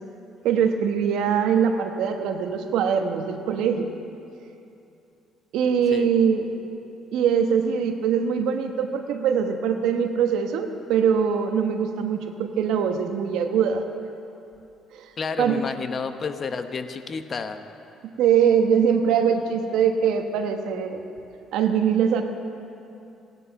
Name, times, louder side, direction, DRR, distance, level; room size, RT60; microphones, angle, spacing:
voice 1, 0.4-3.9 5.5-6.5 7.1-13.8 14.9-15.1 15.4-15.6 18.2-21.0 21.5-22.2, right 7 dB, 80° right, 5 dB, 1.2 m, -22 dB
voice 2, 15.2-17.6, left 5 dB, 45° left, 8 dB, 1.1 m, -30 dB
16.0 x 11.0 x 5.9 m, 2.7 s
supercardioid pair, 75°, 0 cm